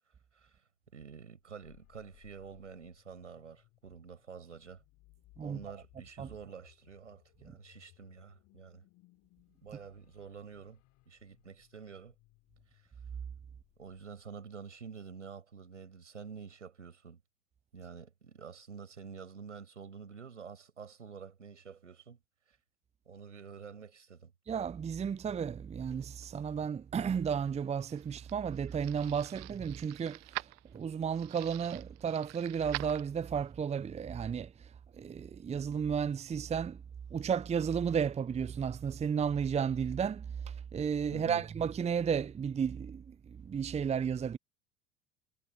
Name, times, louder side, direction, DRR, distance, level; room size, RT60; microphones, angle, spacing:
voice 1, 0.9-4.8 5.4-8.8 9.6-10.8 11.1-12.1 12.7-12.9 13.8-17.2 17.7-22.2 22.5-22.6 23.0-24.3 41.1-41.5, right 6 dB, 80° right, 6.8 m, -48 dB
sound 1, 1.4-14.9, left 21 dB, 50° left, 6.8 m, -65 dB
voice 2, 24.5-34.7 35.0-36.8 37.1-44.4, right 7 dB, 20° right, 0.9 m, -33 dB
sound 2, 27.6-33.5, right 26 dB, 45° right, 1.2 m, -46 dB
figure-of-eight pair, 70°, 36 cm